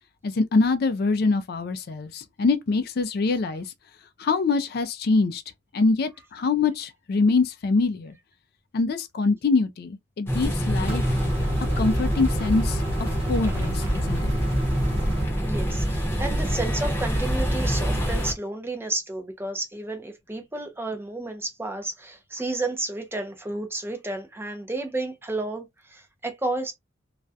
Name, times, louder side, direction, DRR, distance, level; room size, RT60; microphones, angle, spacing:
voice 1, 0.2-3.7 4.2-5.4 5.7-8.2 8.7-11.2 11.8-12.8 13.3-14.3, left 3 dB, 55° left, 0.4 m, -24 dB
sound 1, 10.3-18.3, equal, 10° left, 0.8 m, -25 dB
sound 2, 10.9-15.3, equal, 30° right, 0.8 m, -31 dB
voice 2, 13.4-14.1 15.4-26.7, right 2 dB, 10° right, 0.5 m, -32 dB
2.3 x 2.2 x 2.5 m
head